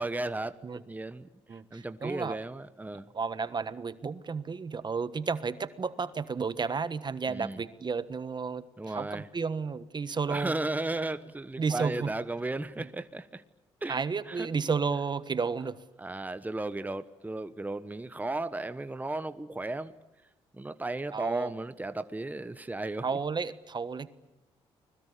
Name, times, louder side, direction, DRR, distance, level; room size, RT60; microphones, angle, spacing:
voice 1, 0.0-3.1 7.3-7.6 8.8-9.3 10.3-13.4 13.8-14.5 16.0-19.9 20.5-23.1, right 2 dB, 15° right, 1.2 m, -35 dB
voice 2, 1.5-2.4 3.1-10.5 11.6-12.1 12.8-12.9 13.9-15.8 21.1-21.5 23.0-24.1, right 5 dB, 40° right, 1.4 m, -32 dB
30.0 x 21.5 x 8.5 m
supercardioid pair, 65°, 12 cm